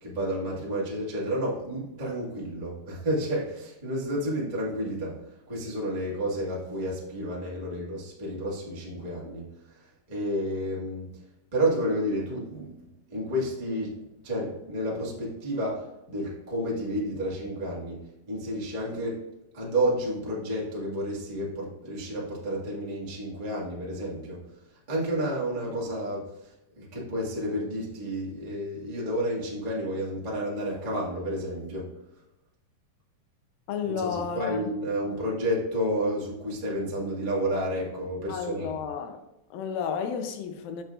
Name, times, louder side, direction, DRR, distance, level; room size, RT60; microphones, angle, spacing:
voice 1, 0.0-5.2 5.5-9.4 10.1-11.1 11.5-12.8 13.1-13.9 14.2-18.0 18.3-19.2 19.5-24.4 24.9-26.5 26.8-31.9 34.0-34.1 34.3-38.7, equal, 90° right, 0.3 m, -30 dB
voice 2, 33.7-34.7 38.3-39.2 39.5-40.8, left 7 dB, 80° left, 2.4 m, -32 dB
7.7 x 7.6 x 2.4 m
omnidirectional pair, 4.1 m